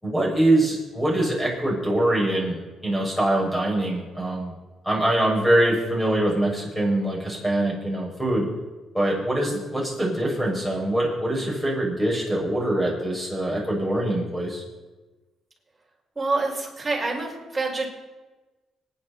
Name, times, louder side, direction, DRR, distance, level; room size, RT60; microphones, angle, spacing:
voice 1, 0.0-2.6 2.8-4.5 4.8-8.5 8.9-14.6, right 1 dB, 5° left, -3 dB, 6.8 m, -23 dB
voice 2, 16.2-17.9, right 3 dB, 15° right, -3 dB, 5.6 m, -27 dB
26.5 x 10.5 x 4.4 m, 1.2 s
cardioid pair, 90°, 0 cm